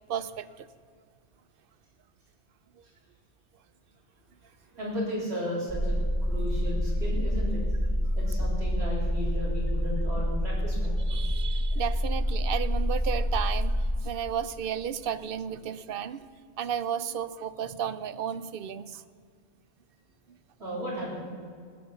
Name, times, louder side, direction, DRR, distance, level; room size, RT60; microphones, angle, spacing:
voice 1, 0.1-0.7 8.0-8.1 11.1-16.2 16.6-19.0 20.3-20.4, right 8 dB, 65° right, 15 dB, 0.8 m, -33 dB
voice 2, 4.8-6.0 6.3-7.6 8.2-10.9 20.6-21.3, equal, 80° right, -7 dB, 4.0 m, -34 dB
sound 1, 5.7-14.0, equal, 10° right, 3.7 m, -27 dB
19.0 x 7.8 x 6.8 m, 2.1 s
omnidirectional pair, 1.1 m